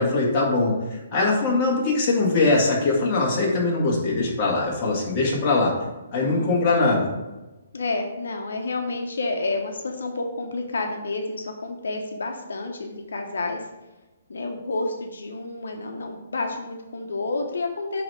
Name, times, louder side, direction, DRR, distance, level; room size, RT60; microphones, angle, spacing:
voice 1, 0.0-5.7 6.1-7.1, left 3 dB, 25° left, -4 dB, 2.0 m, -22 dB
voice 2, 6.1-6.6 7.7-13.6 14.3-18.0, left 3 dB, 85° left, 3 dB, 1.0 m, -30 dB
8.7 x 3.5 x 4.9 m, 1.1 s
hypercardioid pair, 165°, 0 cm